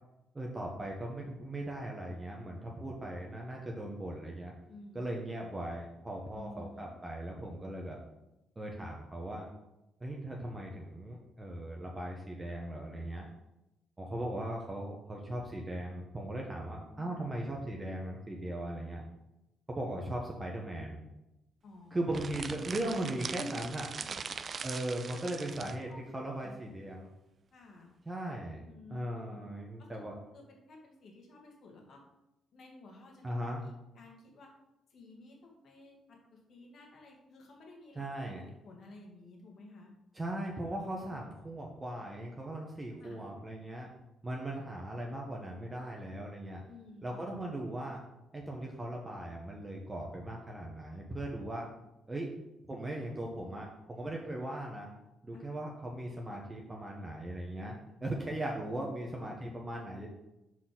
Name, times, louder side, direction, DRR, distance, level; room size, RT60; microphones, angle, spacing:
voice 1, 0.3-4.5 4.9-8.0 8.6-9.5 10.0-13.3 14.0-19.0 19.7-21.0 21.9-23.9 24.6-27.1 28.1-28.6 28.9-30.1 33.2-33.6 38.0-38.4 40.1-43.9 44.2-46.6 47.0-48.0 48.3-51.7 52.1-52.3 52.7-54.9 55.2-60.1, right 1 dB, 20° right, -1 dB, 1.1 m, -38 dB
voice 2, 4.7-5.1 6.3-7.0 17.0-17.1 21.6-22.0 22.5-22.6 24.0-24.3 25.1-25.2 25.9-26.7 27.5-27.9 28.6-29.4 29.8-30.0 30.3-32.0 32.5-33.4 33.6-34.5 34.9-40.0 43.0-43.2 46.7-47.2 55.3-55.5 57.7-57.8 59.2-59.3, left 2 dB, 60° left, 0 dB, 1.9 m, -54 dB
sound 1, 22.1-25.8, right 5 dB, 45° right, 0.4 m, -41 dB
6.1 x 4.1 x 6.0 m, 0.93 s
cardioid pair, 90°, 0 cm